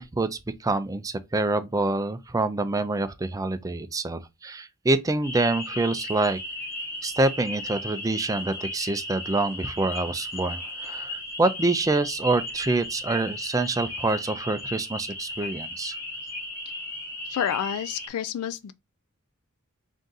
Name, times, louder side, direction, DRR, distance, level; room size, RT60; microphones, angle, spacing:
voice 1, 0.0-6.4 7.0-15.9, right 2 dB, 15° right, 0.4 m, -26 dB
sound 1, 5.2-18.1, left 1 dB, 10° left, 0.8 m, -36 dB
voice 2, 17.3-18.7, left 9 dB, 75° left, 0.3 m, -29 dB
3.6 x 2.6 x 3.8 m
head